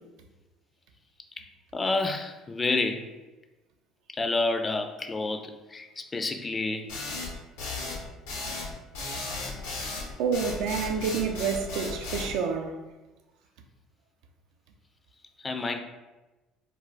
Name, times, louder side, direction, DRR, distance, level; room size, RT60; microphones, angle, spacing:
voice 1, 1.7-3.1 4.2-6.9 15.4-15.8, left 3 dB, 25° left, 0.3 m, -29 dB
sound 1, 6.9-12.3, left 3 dB, 90° left, 0.6 m, -35 dB
voice 2, 10.2-12.7, right 6 dB, 75° right, 0.3 m, -28 dB
2.2 x 2.1 x 3.8 m
supercardioid pair, 80°, 0 cm